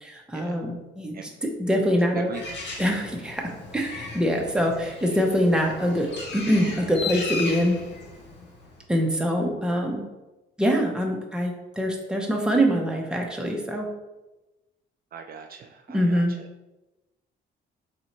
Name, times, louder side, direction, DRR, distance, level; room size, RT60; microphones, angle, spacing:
voice 1, 0.0-2.3 2.8-7.8 8.9-10.0 10.6-13.9 15.9-16.3, equal, 5° right, 0 dB, 0.9 m, -24 dB
voice 2, 2.1-2.6 4.4-4.5 5.0-5.1 15.1-16.2, right 6 dB, 50° right, 3 dB, 0.4 m, -39 dB
Bird, 2.3-8.8, left 3 dB, 60° left, 1.0 m, -36 dB
4.2 x 2.6 x 4.5 m, 1.0 s
cardioid pair, 90°, 20 cm